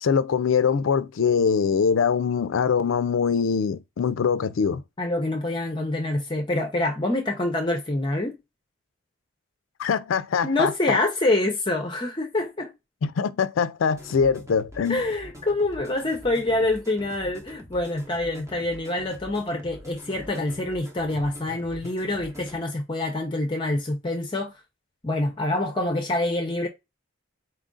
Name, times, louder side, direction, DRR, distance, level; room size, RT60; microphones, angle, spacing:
voice 1, 0.0-4.8 9.8-11.0 13.0-15.0, left 6 dB, 85° left, 0.4 m, -23 dB
voice 2, 5.0-8.3 10.4-12.7 14.9-24.5 25.0-26.7, left 2 dB, 25° left, 0.6 m, -26 dB
sound 1, 13.9-22.6, equal, 15° right, 0.8 m, -45 dB
4.4 x 2.5 x 3.6 m
head